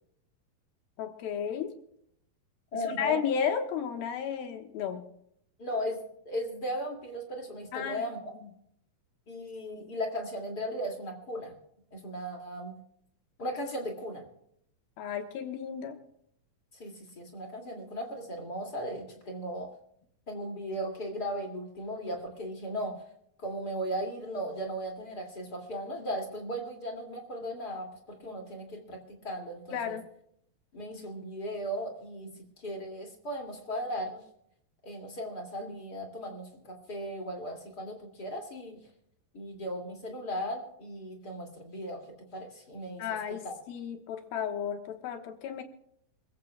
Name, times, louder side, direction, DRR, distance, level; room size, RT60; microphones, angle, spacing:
voice 1, 1.0-1.7 2.8-5.0 7.7-8.1 8.4-8.5 15.0-16.0 29.7-30.1 43.0-45.6, left 7 dB, 80° left, 5 dB, 3.1 m, -33 dB
voice 2, 2.7-3.2 5.6-6.0 6.3-8.3 9.3-11.5 11.9-12.7 13.4-14.3 16.8-19.7 20.3-23.0 23.4-27.9 28.2-30.0 30.7-32.3 32.6-34.2 34.8-38.8 39.3-42.0 42.3-43.0 43.4-43.5, equal, 30° left, 1 dB, 2.6 m, -37 dB
27.0 x 15.0 x 2.3 m, 0.71 s
omnidirectional pair, 4.3 m